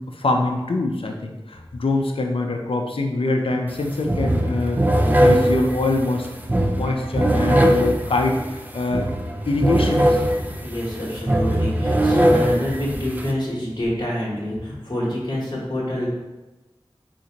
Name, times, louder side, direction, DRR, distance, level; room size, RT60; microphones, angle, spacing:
voice 1, 0.0-4.9 5.2-6.3 6.7-9.1 9.5-10.2, left 2 dB, 65° left, 3 dB, 0.4 m, -24 dB
sound 1, 3.7-3.8 4.1-13.3, right 1 dB, 15° right, 0.4 m, -21 dB
voice 2, 10.6-16.1, equal, 45° left, -5 dB, 1.0 m, -26 dB
3.9 x 2.5 x 2.8 m, 1.1 s
wide cardioid pair, 40°, 10 cm